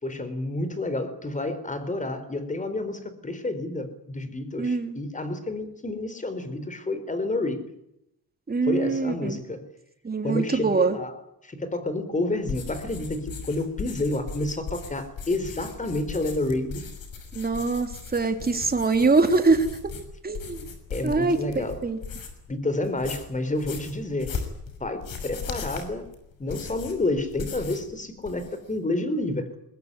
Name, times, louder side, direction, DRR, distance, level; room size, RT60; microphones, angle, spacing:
voice 1, 0.0-7.6 8.6-9.6 10.2-11.1 11.4-16.8 20.9-21.8 22.5-24.4 24.8-26.1 26.4-29.5, left 2 dB, 20° left, 11 dB, 4.2 m, -29 dB
voice 2, 4.6-5.0 8.5-9.4 10.0-11.0 17.3-19.7 20.2-20.6 21.0-22.0, right 3 dB, 25° right, 7 dB, 3.3 m, -23 dB
sound 1, 12.4-22.5 22.8-27.9 28.2-28.7, left 5 dB, 65° left, 6.3 m, -38 dB
22.0 x 21.0 x 9.9 m, 0.80 s
cardioid pair, 130°, 37 cm